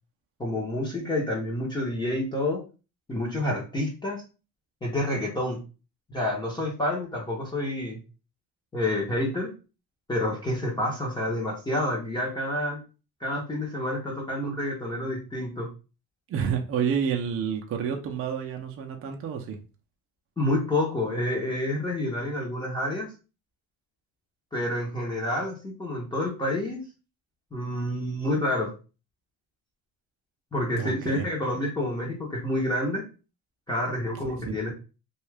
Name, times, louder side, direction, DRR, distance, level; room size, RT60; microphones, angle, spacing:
voice 1, 0.4-2.6 3.1-4.2 4.8-5.6 6.1-8.0 8.7-9.5 10.1-12.8 13.2-15.7 20.4-23.1 24.5-26.8 27.5-28.7 30.5-33.0 33.7-34.7, left 1 dB, 10° left, -3 dB, 0.6 m, -28 dB
voice 2, 16.3-19.6 30.7-31.2 34.4-34.6, right 7 dB, 35° right, 3 dB, 0.5 m, -29 dB
2.7 x 2.3 x 3.2 m, 0.33 s
cardioid pair, 150°, 38 cm